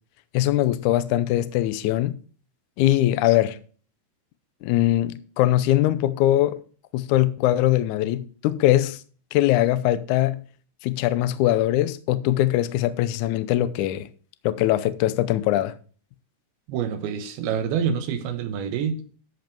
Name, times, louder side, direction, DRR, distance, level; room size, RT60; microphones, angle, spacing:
voice 1, 0.3-2.2 2.8-3.6 4.6-6.6 6.9-9.0 9.3-10.4 10.8-14.1 14.4-15.7, left 14 dB, 85° left, 1.7 m, -21 dB
voice 2, 16.7-19.0, right 7 dB, 90° right, 3.0 m, -27 dB
13.0 x 5.2 x 4.5 m
omnidirectional pair, 4.3 m